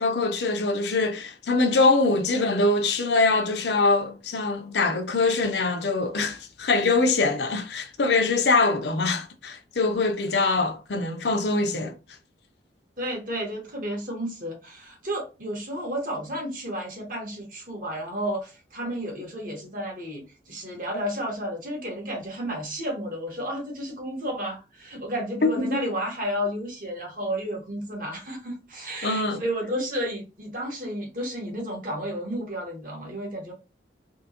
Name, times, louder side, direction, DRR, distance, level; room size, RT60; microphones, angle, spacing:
voice 1, 0.0-12.0 25.4-25.9 29.0-29.4, left 3 dB, 70° left, 0.7 m, -23 dB
voice 2, 13.0-33.5, equal, 50° right, 1.6 m, -32 dB
3.6 x 2.9 x 2.9 m
head